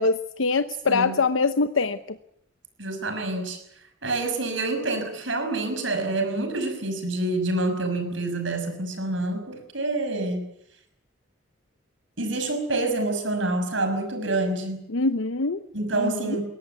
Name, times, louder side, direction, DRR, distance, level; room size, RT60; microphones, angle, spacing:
voice 1, 0.0-2.2 14.9-15.6 16.0-16.4, left 3 dB, 80° left, 10 dB, 0.9 m, -24 dB
voice 2, 2.8-3.6 4.0-10.4 12.2-14.8 15.7-16.4, right 2 dB, 70° right, 7 dB, 6.1 m, -27 dB
22.0 x 17.5 x 9.4 m, 0.73 s
head